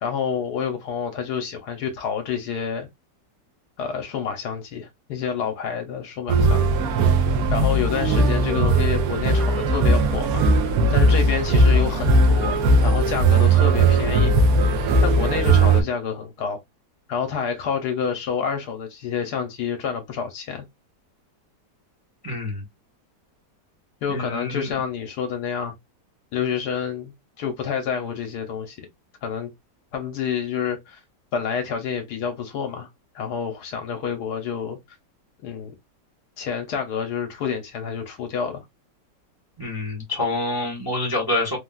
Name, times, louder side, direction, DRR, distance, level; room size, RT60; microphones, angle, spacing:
voice 1, 0.0-2.9 3.8-6.7 7.5-10.4 10.9-14.4 15.0-16.6 17.1-20.6 24.0-25.7 26.3-28.9 29.2-29.5 29.9-31.0 31.3-32.9 33.1-34.8 35.4-35.7 36.4-38.6, left 7 dB, 70° left, 1.2 m, -28 dB
sound 1, 6.3-15.8, right 2 dB, 70° right, 0.9 m, -18 dB
voice 2, 22.2-22.6 24.1-24.7 39.6-41.6, left 2 dB, 20° right, 0.7 m, -27 dB
3.3 x 2.3 x 2.2 m
omnidirectional pair, 1.9 m